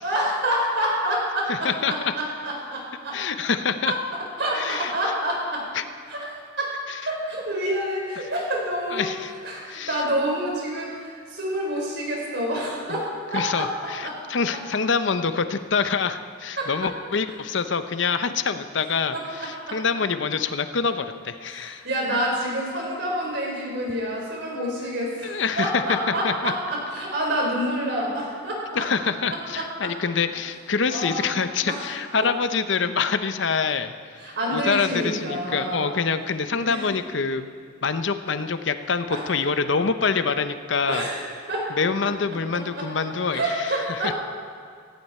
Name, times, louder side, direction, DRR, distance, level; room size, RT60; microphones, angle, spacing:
voice 1, 0.0-3.2 3.8-4.0 4.4-5.7 6.1-6.3 6.6-9.1 9.4-13.7 14.0-14.2 16.6-16.9 19.1-19.8 21.4-28.8 29.2-29.9 30.9-31.3 31.6-31.8 32.2-32.3 34.2-36.1 36.5-36.8 39.1-39.2 40.8-41.2 41.5-41.7 42.5-42.9 43.3-44.1, right 1 dB, 60° right, -2 dB, 4.6 m, -28 dB
voice 2, 1.5-2.1 3.1-3.9 4.5-4.9 5.7-5.8 8.9-9.3 9.7-10.0 12.9-13.0 13.3-21.8 25.2-26.0 26.2-26.5 28.8-33.9 34.5-37.4 37.8-41.1 41.8-43.4 43.9-44.1, left 5 dB, 65° left, 10 dB, 0.7 m, -25 dB
16.5 x 16.0 x 4.4 m, 2.1 s
head